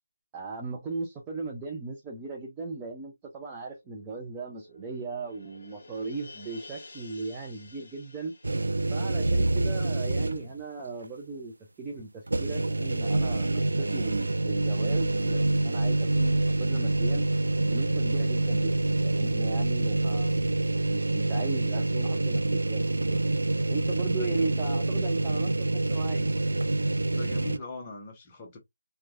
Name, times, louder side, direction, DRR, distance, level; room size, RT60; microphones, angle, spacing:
voice 1, 0.3-8.3 8.9-11.5 11.8-17.3 17.6-20.6 20.9-23.2 23.7-26.3, right 3 dB, 10° right, 0.5 m, -37 dB
sound 1, 3.7-10.7 11.0-11.1, left 3 dB, 40° left, 1.4 m, -52 dB
sound 2, 8.4-10.6 11.0-11.1 12.3-27.6, right 2 dB, 60° right, 0.5 m, -26 dB
voice 2, 24.2-24.8 27.1-28.6, left 3 dB, 15° left, 0.9 m, -41 dB
4.4 x 2.3 x 2.6 m
figure-of-eight pair, 155°, 0 cm